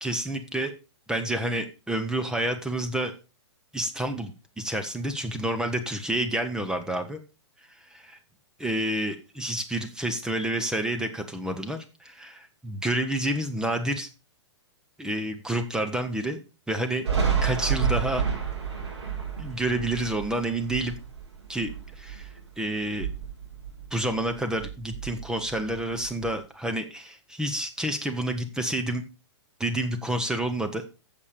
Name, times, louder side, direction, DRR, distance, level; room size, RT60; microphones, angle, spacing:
voice 1, 0.0-0.7 1.1-3.1 3.7-7.2 7.9-8.2 8.6-14.1 15.0-16.4 16.7-17.0 17.4-18.2 19.4-20.9 21.5-21.7 22.0-22.3 22.6-23.1 23.9-29.0 29.6-30.8, right 1 dB, 5° right, 5 dB, 1.0 m, -29 dB
Thunder, 17.0-22.5 22.8-24.3 24.6-26.3, right 7 dB, 65° right, 4.8 m, -30 dB
8.3 x 6.9 x 5.0 m, 0.30 s
hypercardioid pair, 115°, 15 cm